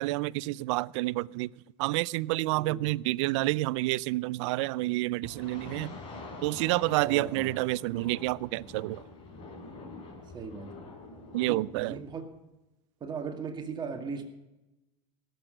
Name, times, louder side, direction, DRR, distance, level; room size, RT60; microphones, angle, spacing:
voice 1, 0.0-1.5 1.8-5.9 6.4-9.0 11.3-12.0, right 19 dB, 65° right, 0.4 m, -29 dB
sound 1, 5.2-12.2, left 3 dB, 35° left, 4.2 m, -46 dB
voice 2, 7.0-7.5 10.3-10.7 11.5-12.2 13.0-14.2, right 5 dB, 25° right, 2.3 m, -37 dB
18.0 x 7.9 x 6.6 m
supercardioid pair, 115°, 16 cm